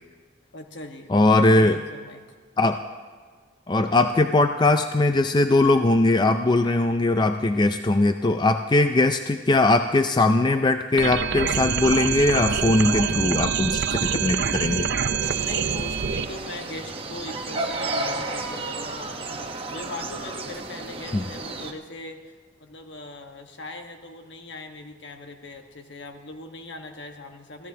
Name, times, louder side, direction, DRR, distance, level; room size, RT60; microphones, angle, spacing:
voice 1, 0.5-1.1 1.5-2.2 15.3-19.1 19.7-22.2 22.6-27.7, left 2 dB, 65° left, 4 dB, 1.4 m, -40 dB
voice 2, 1.1-1.8 2.6-2.8 3.7-14.9 21.1-21.2, left 2 dB, 25° left, 8 dB, 0.4 m, -20 dB
sound 1, 11.0-16.3, right 6 dB, 60° right, 0.6 m, -25 dB
sound 2, 15.2-21.7, right 2 dB, 30° right, 1.0 m, -32 dB
24.5 x 15.0 x 2.8 m, 1.5 s
head